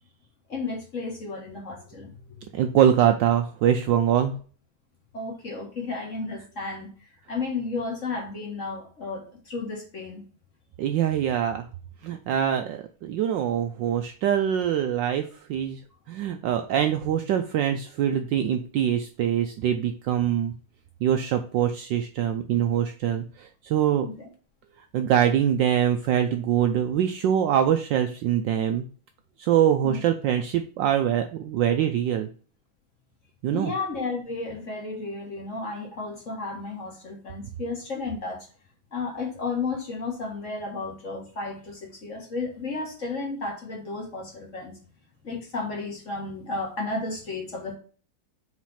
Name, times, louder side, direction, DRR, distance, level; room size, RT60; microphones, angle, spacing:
voice 1, 0.5-2.4 5.1-10.2 24.0-24.2 29.8-30.0 33.5-38.4 38.9-44.8 45.2-47.7, left 3 dB, 40° left, -1 dB, 1.8 m, -33 dB
voice 2, 2.5-4.3 10.8-11.6 12.0-15.8 16.1-20.5 21.0-24.1 24.9-28.8 29.4-32.3 33.4-33.7, right 9 dB, 75° right, 6 dB, 1.1 m, -24 dB
4.7 x 4.1 x 5.6 m, 0.41 s
omnidirectional pair, 2.4 m